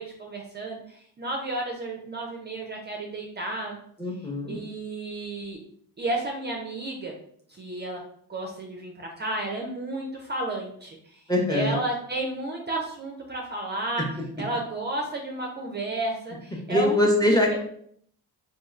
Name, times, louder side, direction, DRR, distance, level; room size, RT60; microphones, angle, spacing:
voice 1, 0.0-3.8 4.5-5.6 6.0-7.1 7.5-8.0 8.3-11.2 11.5-14.1 14.4-17.0 17.5-17.6, right 2 dB, 25° right, 0 dB, 0.4 m, -32 dB
voice 2, 4.0-4.6 11.3-11.8 16.7-17.6, left 1 dB, 10° left, -1 dB, 0.7 m, -22 dB
2.9 x 2.4 x 2.4 m, 0.65 s
supercardioid pair, 70°, 40 cm